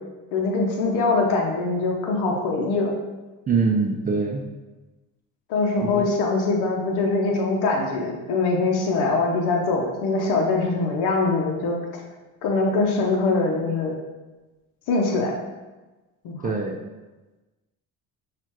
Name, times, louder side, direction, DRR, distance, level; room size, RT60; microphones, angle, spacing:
voice 1, 0.3-3.0 5.5-12.0 12.4-14.0 14.9-15.3 16.2-16.5, left 3 dB, 75° left, 0 dB, 0.8 m, -23 dB
voice 2, 3.5-4.4 5.8-6.0 16.4-16.8, right 4 dB, 25° right, 1 dB, 0.4 m, -23 dB
6.1 x 2.4 x 2.9 m, 1.1 s
supercardioid pair, 80°, 39 cm